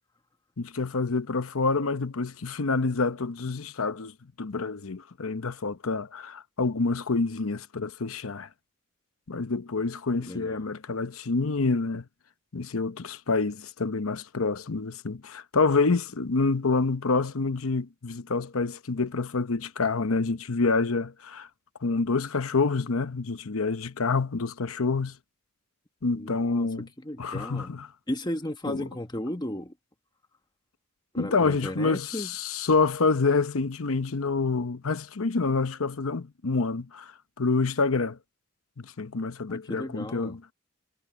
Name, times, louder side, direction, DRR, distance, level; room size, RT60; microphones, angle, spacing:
voice 1, 0.6-8.5 9.3-12.1 12.5-21.5 21.8-25.2 26.0-26.9 27.2-27.9 28.7-28.9 31.2-38.2 38.8-40.4, left 4 dB, 80° left, 0.9 m, -27 dB
voice 2, 10.2-10.7 26.2-26.7 27.0-27.8 28.1-29.7 31.1-32.3 39.5-40.4, left 1 dB, 20° left, 1.2 m, -35 dB
head